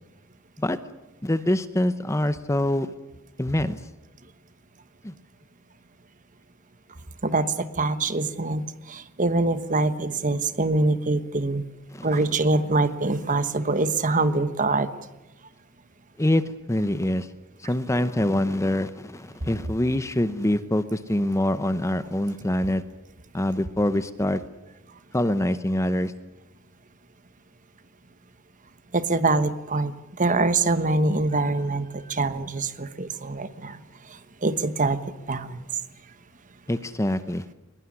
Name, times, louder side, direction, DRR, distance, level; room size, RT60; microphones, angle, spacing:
voice 1, 1.2-2.9 3.4-3.8 5.0-5.1 11.9-12.2 16.2-16.4 16.7-17.3 17.6-22.8 23.3-24.4 25.1-26.1 36.7-37.4, left 1 dB, 15° left, 12 dB, 0.8 m, -25 dB
voice 2, 7.2-11.6 12.0-14.9 28.9-33.8 34.4-35.0 35.3-35.6, right 3 dB, 35° right, 12 dB, 1.3 m, -24 dB
21.5 x 21.0 x 9.8 m, 0.99 s
head